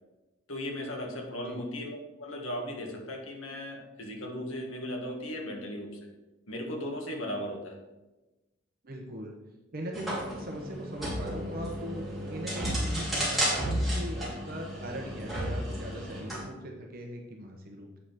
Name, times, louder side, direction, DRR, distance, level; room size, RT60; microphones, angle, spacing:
voice 1, 0.5-6.0 6.5-7.8, left 1 dB, 85° left, 1 dB, 1.8 m, -37 dB
voice 2, 8.8-9.3 9.7-12.0 12.3-18.0, equal, 45° right, 1 dB, 1.1 m, -39 dB
sound 1, 9.9-16.4, equal, ahead, 3.0 m, -33 dB
8.2 x 5.7 x 5.8 m, 1.1 s
head